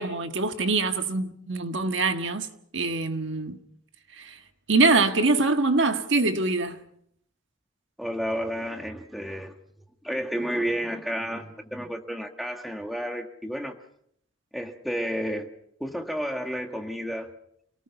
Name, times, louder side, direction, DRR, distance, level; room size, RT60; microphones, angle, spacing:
voice 1, 0.0-2.5 2.7-3.6 4.2-4.4 4.7-6.8, right 3 dB, 65° right, 1.6 m, -24 dB
voice 2, 8.0-9.6 10.0-13.7 14.5-15.5 15.8-17.3, equal, ahead, 1.6 m, -31 dB
28.5 x 18.5 x 5.8 m
head